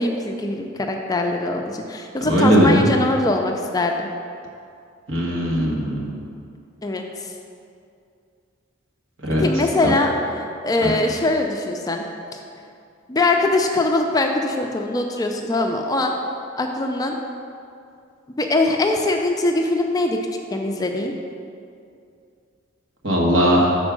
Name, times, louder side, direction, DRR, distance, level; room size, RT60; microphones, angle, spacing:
voice 1, 0.0-4.1 6.8-7.3 9.4-10.1 10.4-12.1 12.3-12.4 13.1-16.1 16.6-17.2 18.4-20.2 20.5-21.1, left 2 dB, 20° left, 2 dB, 0.4 m, -22 dB
voice 2, 2.2-2.8 5.1-6.2 9.2-9.4 9.8-9.9 10.8-10.9 23.0-23.8, equal, 70° right, -3 dB, 1.4 m, -18 dB
6.2 x 4.4 x 6.1 m, 2.5 s
head